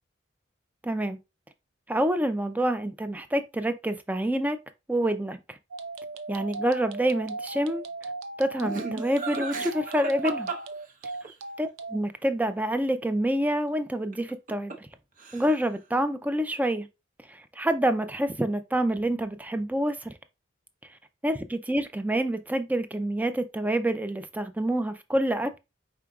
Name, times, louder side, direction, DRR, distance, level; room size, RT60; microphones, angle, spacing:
voice 1, 0.8-1.2 1.9-4.6 4.9-5.6 6.3-7.8 8.4-10.5 11.6-14.9 15.3-16.9 17.3-20.1 21.2-25.6, right 1 dB, 10° right, 0.3 m, -27 dB
sound 1, 5.7-12.0, right 3 dB, 85° right, 0.5 m, -37 dB
Laughter, 8.6-11.3 14.1-14.9 15.2-15.7, right 3 dB, 40° right, 0.8 m, -35 dB
4.9 x 3.8 x 2.3 m
head